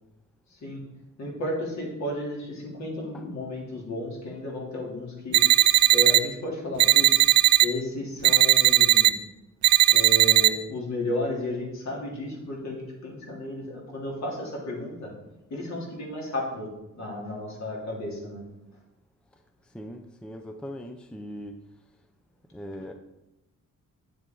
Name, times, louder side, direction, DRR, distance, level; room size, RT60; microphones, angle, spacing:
voice 1, 0.5-0.8 1.2-5.5 5.9-7.2 7.6-9.1 9.9-15.1 15.5-18.4 18.7-18.8, left 1 dB, 65° left, -3 dB, 3.3 m, -33 dB
sound 1, 5.3-6.2 6.8-7.7 8.2-9.1 9.6-10.5, right 13 dB, 65° right, 0.5 m, -18 dB
voice 2, 19.6-21.6 22.5-22.9, equal, 5° left, 6 dB, 0.5 m, -40 dB
9.4 x 7.6 x 3.9 m, 0.92 s
wide cardioid pair, 145°, 31 cm